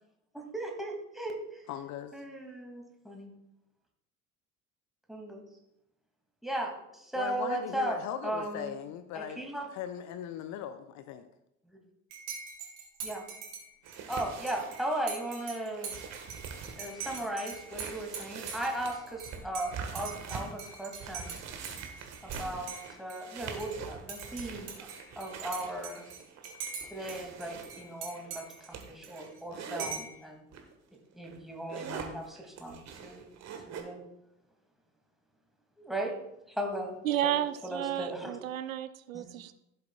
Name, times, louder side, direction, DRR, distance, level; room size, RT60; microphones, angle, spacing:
voice 1, 0.3-1.6 2.1-3.3 5.1-5.4 6.4-8.7 9.1-9.6 11.7-11.8 13.0-13.2 14.1-15.9 16.8-21.4 22.2-24.7 25.2-26.0 26.9-30.4 31.1-33.2 33.7-34.0 35.8-36.2 36.6-37.0 37.2-37.3 37.6-38.3 39.1-39.3, right 1 dB, ahead, 0 dB, 2.4 m, -37 dB
voice 2, 1.7-2.1 7.2-9.4 9.7-11.3, left 9 dB, 45° left, 11 dB, 0.7 m, -39 dB
Dishes pots and pans / Cutlery silverware / Chink clink, 12.1-22.4 22.7-23.8 24.1-27.2 27.4-29.4 29.8-30.2, right 6 dB, 60° right, 2.6 m, -43 dB
sound 1, 13.8-29.9 30.5-30.7 31.1-33.8, right 6 dB, 40° right, 1.6 m, -44 dB
voice 3, 37.0-39.6, right 11 dB, 75° right, 14 dB, 0.5 m, -32 dB
15.5 x 7.8 x 2.4 m, 0.82 s
figure-of-eight pair, 60°, 41 cm